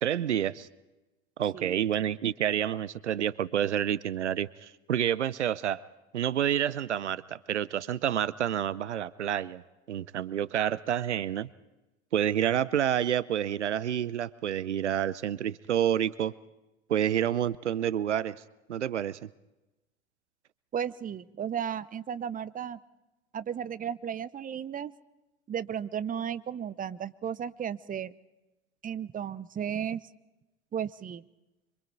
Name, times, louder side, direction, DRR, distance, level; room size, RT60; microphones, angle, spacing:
voice 1, 0.0-0.7 1.4-5.8 6.1-9.6 9.9-11.5 12.1-16.3 16.9-18.4 18.7-19.3, right 10 dB, 90° right, 19 dB, 0.6 m, -28 dB
voice 2, 20.7-22.8 23.3-24.9 25.5-28.1 28.8-30.0 30.7-31.2, right 8 dB, 25° right, 16 dB, 0.8 m, -34 dB
26.5 x 24.0 x 4.7 m, 1.0 s
hypercardioid pair, 75°, 34 cm